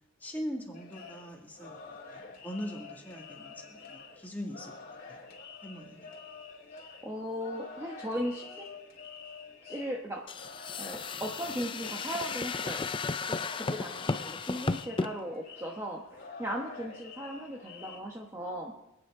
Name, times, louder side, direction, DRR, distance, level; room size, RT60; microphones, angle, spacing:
voice 1, 0.2-4.7 5.1-5.2 5.6-6.1, equal, 10° left, -1 dB, 2.2 m, -41 dB
sound 1, 0.7-18.0, left 4 dB, 40° left, 2.5 m, -48 dB
voice 2, 6.7-8.8 9.6-10.2 10.8-12.9 13.3-18.7, equal, 15° right, -1 dB, 1.0 m, -37 dB
sound 2, 10.3-15.1, left 4 dB, 25° left, 0.4 m, -34 dB
27.0 x 9.1 x 3.7 m, 0.94 s
head